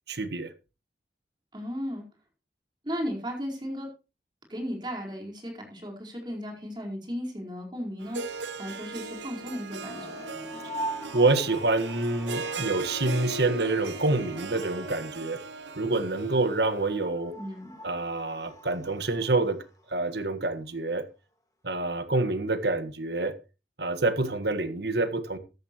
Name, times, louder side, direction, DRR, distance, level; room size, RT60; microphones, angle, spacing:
voice 1, 0.1-0.5 11.1-15.4 15.7-17.3 17.8-19.6 19.9-21.1 21.6-23.3 23.8-25.4, right 2 dB, 70° right, 1.6 m, -27 dB
voice 2, 1.5-2.1 2.8-3.9 4.5-10.2 17.4-17.7, equal, 25° right, 4.5 m, -35 dB
Harp, 8.0-17.0, right 3 dB, 85° right, 0.9 m, -38 dB
sound 1, 9.8-19.9, right 1 dB, 20° left, 1.9 m, -42 dB
14.0 x 12.5 x 3.1 m
head